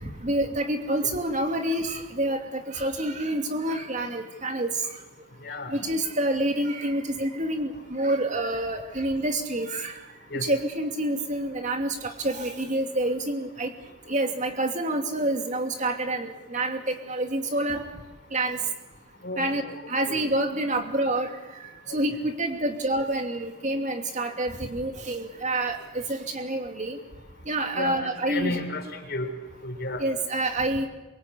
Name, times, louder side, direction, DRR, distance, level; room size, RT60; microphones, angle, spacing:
voice 1, 0.0-4.7 5.7-10.0 10.3-13.7 14.1-17.8 18.3-18.6 19.4-19.6 19.9-21.3 21.6-27.0 27.5-28.6 30.0-30.9, right 1 dB, 40° right, 5 dB, 2.7 m, -28 dB
voice 2, 19.2-19.8 20.1-20.2 27.7-29.3 29.6-30.0, left 2 dB, 55° left, 5 dB, 4.0 m, -32 dB
23.5 x 23.0 x 8.5 m, 1.1 s
head